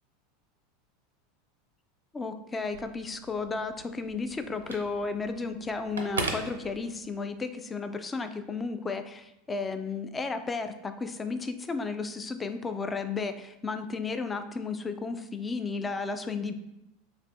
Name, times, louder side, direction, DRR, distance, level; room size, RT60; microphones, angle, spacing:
voice 1, 2.1-16.5, left 4 dB, 20° left, 9 dB, 0.3 m, -33 dB
Telephone, 2.6-7.4, right 3 dB, 75° right, 0.4 m, -39 dB
3.2 x 2.9 x 2.6 m, 0.91 s
figure-of-eight pair, 80°, 0 cm